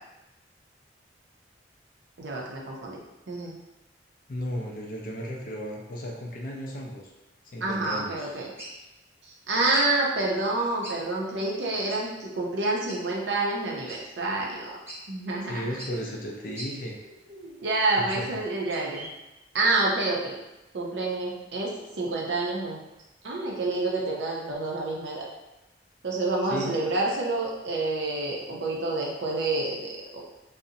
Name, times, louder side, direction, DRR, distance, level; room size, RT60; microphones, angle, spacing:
voice 1, 2.2-3.0 3.3-3.6 7.6-8.5 9.2-14.8 15.1-15.7 17.3-19.1 19.5-20.4 20.7-22.8 23.2-25.3 26.0-30.2, right 2 dB, 70° right, -2 dB, 0.5 m, -28 dB
voice 2, 4.3-7.1 7.4-8.2 15.4-17.0 18.1-18.4 26.5-26.8, equal, 50° left, -1 dB, 0.4 m, -35 dB
sound 1, 8.6-8.8 9.7-9.9 10.8-11.0 11.3-11.4 11.9-12.0 12.9-13.0 13.9-14.0 14.5-14.6 14.9-15.0 15.8-15.9 16.6-16.7 17.6-18.3 18.7-19.1, right 1 dB, 15° right, 0.6 m, -41 dB
2.5 x 2.0 x 2.6 m, 1.0 s
head